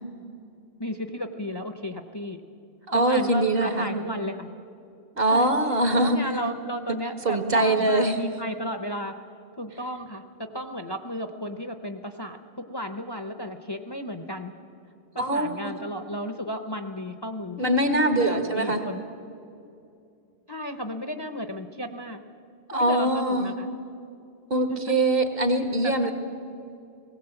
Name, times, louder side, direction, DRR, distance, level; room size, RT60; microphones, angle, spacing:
voice 1, 0.8-2.4 2.9-4.5 5.3-5.5 5.9-9.1 9.6-12.4 12.7-14.5 15.1-17.6 18.1-19.0 20.5-22.2 22.7-23.7 24.7-24.8 25.8-26.1, equal, 25° left, 7 dB, 0.7 m, -33 dB
voice 2, 2.9-3.9 5.2-6.2 7.3-8.2 15.2-15.7 17.6-18.8 22.7-23.5 24.5-26.1, right 1 dB, 65° right, 6 dB, 1.9 m, -23 dB
19.0 x 17.0 x 8.0 m, 2.5 s
omnidirectional pair, 1.0 m